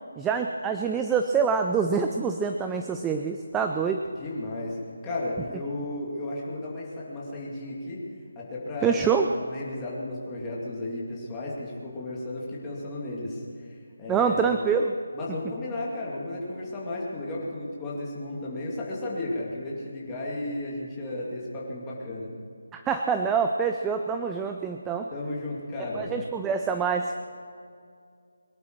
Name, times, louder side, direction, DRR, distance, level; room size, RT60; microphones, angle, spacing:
voice 1, 0.2-4.0 8.8-9.3 14.1-14.9 22.7-25.1 25.9-27.2, right 6 dB, 5° right, 5 dB, 0.4 m, -26 dB
voice 2, 4.2-8.0 8.4-14.5 15.1-22.3 25.1-26.1, left 2 dB, 10° left, -5 dB, 2.3 m, -34 dB
22.5 x 11.5 x 4.6 m, 2.2 s
figure-of-eight pair, 175°, 0 cm